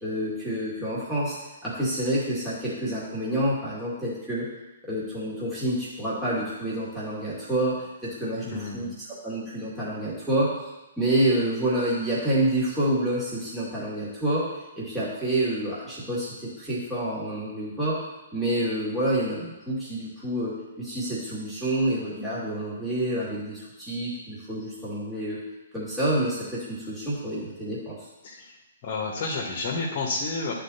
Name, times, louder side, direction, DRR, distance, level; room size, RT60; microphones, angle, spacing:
voice 1, 0.0-4.5 4.8-10.5 11.0-18.0 18.3-25.4 25.7-28.0, right 1 dB, 5° right, -10 dB, 2.3 m, -28 dB
voice 2, 8.4-8.9 28.2-28.5 28.8-30.5, left 3 dB, 40° left, -2 dB, 1.3 m, -30 dB
11.5 x 4.3 x 2.8 m, 1.0 s
figure-of-eight pair, 120°, 0 cm